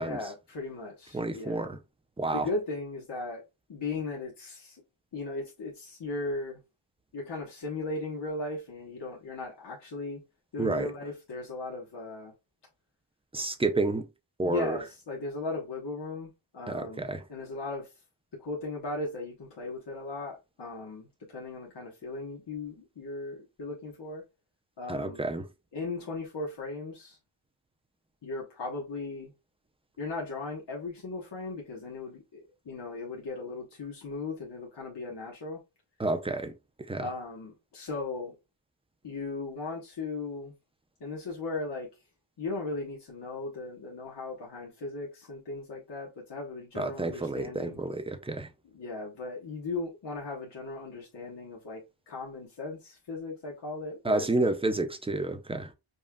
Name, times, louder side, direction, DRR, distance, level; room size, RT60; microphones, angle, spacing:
voice 1, 0.0-1.7 2.3-3.4 3.7-4.8 5.1-6.6 7.1-10.2 10.5-12.3 14.4-17.0 17.3-17.9 18.4-24.2 24.8-25.2 25.7-27.2 28.2-29.3 30.0-32.4 32.6-35.6 37.0-38.3 39.0-40.5 41.0-41.9 42.4-47.8 48.6-54.5, left 3 dB, 55° left, 1.2 m, -37 dB
voice 2, 1.1-1.8 2.2-2.5 10.6-10.9 13.3-14.1 14.4-14.8 16.7-17.2 24.9-25.5 36.0-36.5 36.9-37.1 46.8-48.5 54.0-55.7, right 2 dB, 10° right, 0.5 m, -30 dB
5.3 x 2.4 x 2.2 m
wide cardioid pair, 95°, 48 cm